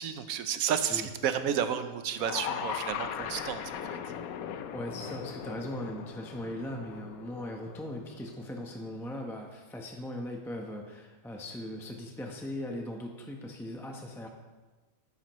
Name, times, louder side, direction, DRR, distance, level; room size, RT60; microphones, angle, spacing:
voice 1, 0.0-4.0, right 8 dB, 75° right, 10 dB, 1.1 m, -31 dB
sound 1, 2.2-8.4, left 8 dB, 75° left, 1.0 m, -39 dB
voice 2, 4.7-14.3, left 1 dB, ahead, 1 dB, 0.7 m, -39 dB
12.0 x 10.0 x 3.1 m, 1.2 s
omnidirectional pair, 1.6 m